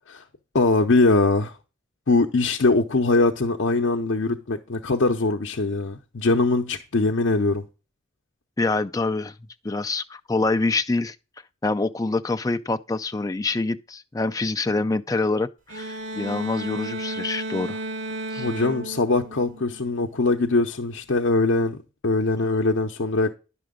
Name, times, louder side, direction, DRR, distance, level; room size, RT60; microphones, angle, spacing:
voice 1, 0.5-1.5 2.1-7.6 18.4-23.3, left 3 dB, 75° left, 0.7 m, -22 dB
voice 2, 8.6-9.3 9.6-11.2 11.6-17.8 18.3-18.5, left 3 dB, 20° left, 0.4 m, -26 dB
sound 1, 15.7-20.1, right 2 dB, 80° right, 2.0 m, -33 dB
10.0 x 6.1 x 3.7 m
head